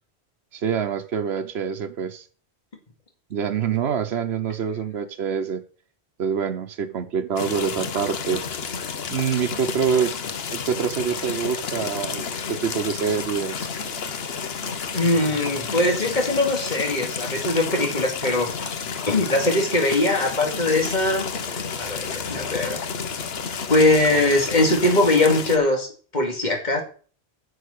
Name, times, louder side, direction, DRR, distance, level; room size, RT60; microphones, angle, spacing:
voice 1, 0.5-2.2 3.3-5.6 6.2-8.4 9.1-10.1 10.5-13.7, right 7 dB, 85° right, 1.2 m, -26 dB
sound 1, 7.4-25.6, left 6 dB, 70° left, 1.2 m, -31 dB
voice 2, 14.9-18.5 19.1-21.3 21.8-22.8 23.7-25.9 26.1-26.8, left 2 dB, 45° left, 2.4 m, -21 dB
9.9 x 6.6 x 6.5 m
omnidirectional pair, 1.1 m